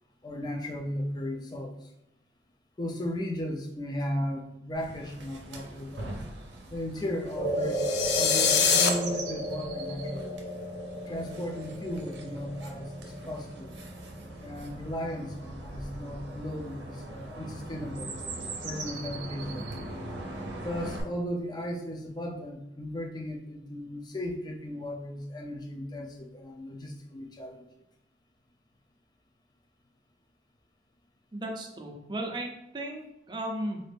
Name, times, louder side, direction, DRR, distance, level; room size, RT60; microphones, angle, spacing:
voice 1, 0.2-1.9 2.8-6.1 6.7-7.8 8.1-10.4 11.1-13.7 14.4-19.6 20.6-27.6, left 1 dB, 25° left, 1 dB, 0.5 m, -36 dB
Chirp tweet, 4.7-21.0, right 2 dB, 85° right, 0.6 m, -41 dB
sound 1, 7.3-15.8, right 1 dB, 50° left, 1.3 m, -35 dB
sound 2, 7.7-8.9, left 7 dB, 80° left, 0.4 m, -24 dB
voice 2, 31.3-33.8, right 1 dB, 25° right, 2 dB, 0.5 m, -35 dB
4.0 x 2.5 x 3.4 m, 0.86 s
head